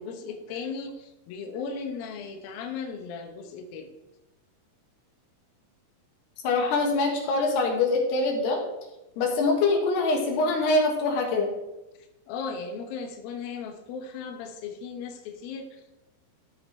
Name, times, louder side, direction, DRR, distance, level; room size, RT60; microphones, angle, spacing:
voice 1, 0.0-3.9 12.3-16.0, left 5 dB, 75° left, 3 dB, 2.6 m, -36 dB
voice 2, 6.4-8.6 9.2-11.5, left 3 dB, 90° left, 1 dB, 3.6 m, -24 dB
12.5 x 6.0 x 3.3 m, 0.97 s
omnidirectional pair, 4.6 m